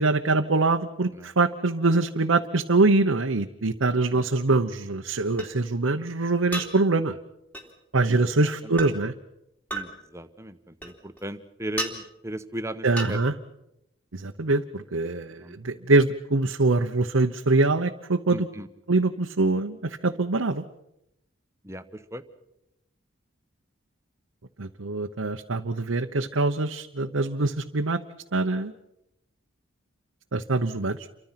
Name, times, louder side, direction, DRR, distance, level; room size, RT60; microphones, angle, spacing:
voice 1, 0.0-7.2 7.9-9.1 12.8-13.3 14.1-18.5 18.9-20.6 24.6-28.0 28.3-28.7 30.3-31.0, right 3 dB, 85° right, 3 dB, 1.0 m, -24 dB
sound 1, 4.1-4.2 5.4-5.5 6.5-6.7 7.5-7.7 8.8-8.9 9.7-9.9 10.8-11.3 11.8-11.9 13.0-13.1, right 2 dB, 10° left, 3.1 m, -32 dB
voice 2, 9.7-13.2 15.4-15.6 18.3-18.7 21.6-22.2, right 1 dB, 15° right, 9 dB, 1.2 m, -37 dB
29.0 x 24.5 x 5.9 m, 0.85 s
head